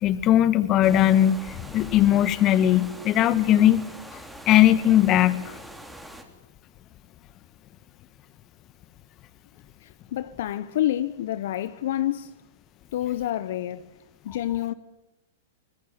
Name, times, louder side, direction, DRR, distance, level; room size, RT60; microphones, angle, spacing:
voice 1, 0.0-3.8 4.5-5.5, left 12 dB, 35° left, 1.6 m, -19 dB
sound 1, 0.8-6.2, right 1 dB, ahead, 3.3 m, -43 dB
voice 2, 9.8-12.3 12.9-13.9 14.2-14.7, left 13 dB, 65° left, 0.9 m, -28 dB
25.0 x 20.5 x 9.1 m
hypercardioid pair, 110°, 0 cm